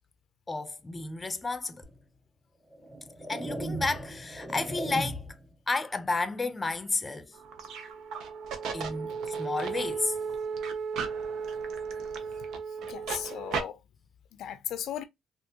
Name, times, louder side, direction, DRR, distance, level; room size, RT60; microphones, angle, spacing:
voice 1, 0.5-1.8 3.3-5.2 5.7-7.3 8.7-10.2, left 3 dB, 25° left, 0.6 m, -32 dB
sound 1, 1.8-2.0 2.7-5.5, right 1 dB, 5° right, 1.0 m, -37 dB
sound 2, 7.3-13.6, right 6 dB, 80° right, 0.6 m, -35 dB
voice 2, 12.7-13.8 14.3-15.0, left 10 dB, 80° left, 0.4 m, -37 dB
3.4 x 2.4 x 2.8 m
cardioid pair, 90°, 0 cm